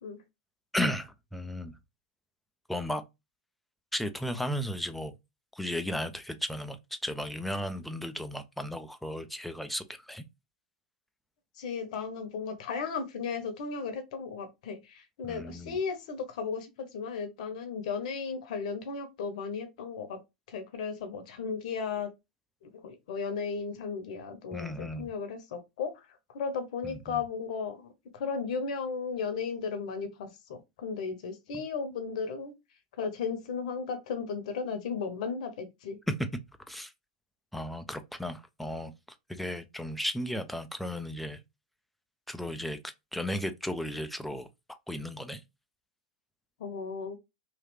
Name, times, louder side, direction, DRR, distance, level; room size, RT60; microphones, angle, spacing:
voice 1, 0.7-1.8 2.7-3.0 3.9-5.1 5.5-6.8 7.0-10.2 15.3-15.8 24.5-25.1 26.8-27.2 31.5-31.6 36.7-36.9 37.5-38.9 39.3-41.4 42.3-42.8 43.1-44.5 44.9-45.4, left 1 dB, ahead, 0.5 m, -35 dB
voice 2, 11.6-20.2 20.5-22.1 22.6-32.5 33.0-36.0 46.6-47.2, left 5 dB, 60° left, 0.9 m, -35 dB
3.1 x 2.7 x 3.3 m
figure-of-eight pair, 95°, 4 cm